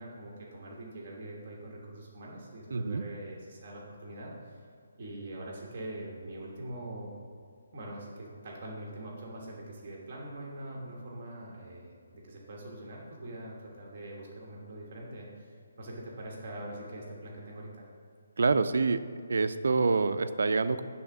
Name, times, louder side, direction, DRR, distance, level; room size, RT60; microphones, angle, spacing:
voice 1, 0.0-4.6 5.0-7.2 7.7-17.8, right 1 dB, 35° right, -2 dB, 1.2 m, -43 dB
voice 2, 2.7-3.0 18.4-19.0 19.3-20.8, right 4 dB, 70° right, 11 dB, 0.4 m, -26 dB
9.6 x 3.5 x 6.0 m, 2.3 s
hypercardioid pair, 170°, 0 cm